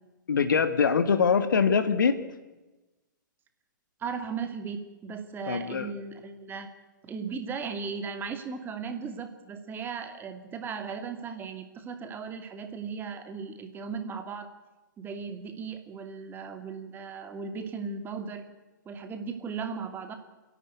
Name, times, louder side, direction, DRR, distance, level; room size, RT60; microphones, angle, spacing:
voice 1, 0.3-2.2 5.5-5.9, left 6 dB, 75° left, 10 dB, 1.9 m, -23 dB
voice 2, 4.0-6.7 7.0-14.5 15.0-18.5 18.8-20.1, right 5 dB, 20° right, 7 dB, 2.6 m, -37 dB
29.5 x 11.5 x 9.4 m, 1.1 s
hypercardioid pair, 120°, 11 cm